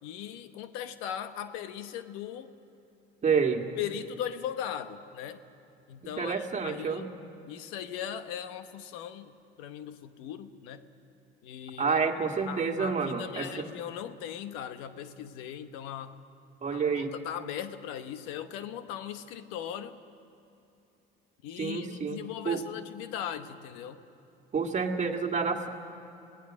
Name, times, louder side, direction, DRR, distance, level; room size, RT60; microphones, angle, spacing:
voice 1, 0.0-2.5 3.8-5.4 5.9-7.1 7.5-10.8 11.4-12.0 12.5-16.1 16.7-20.0 21.4-24.0, left 9 dB, 85° left, 10 dB, 1.0 m, -39 dB
voice 2, 3.2-3.6 6.2-7.1 11.8-13.7 16.6-17.1 21.6-22.2 22.5-22.6 24.5-25.7, right 5 dB, 35° right, 4 dB, 2.0 m, -28 dB
27.0 x 18.0 x 6.3 m, 2.8 s
supercardioid pair, 90°, 21 cm